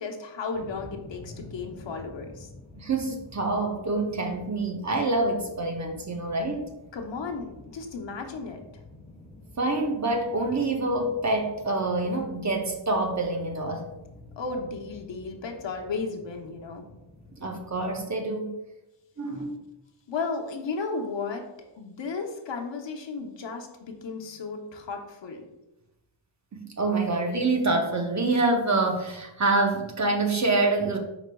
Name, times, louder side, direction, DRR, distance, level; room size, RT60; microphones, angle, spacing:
voice 1, 0.0-2.5 6.9-8.6 14.4-16.8 20.1-21.4 21.8-25.5, left 4 dB, 65° left, 2 dB, 0.8 m, -34 dB
sound 1, 0.5-18.2, left 2 dB, 10° left, 1.1 m, -49 dB
voice 2, 2.8-6.7 9.6-13.9 17.4-18.5 19.2-19.6 26.5-31.0, right 2 dB, 35° right, 3 dB, 0.7 m, -26 dB
4.9 x 4.8 x 2.2 m, 0.94 s
wide cardioid pair, 105°, 46 cm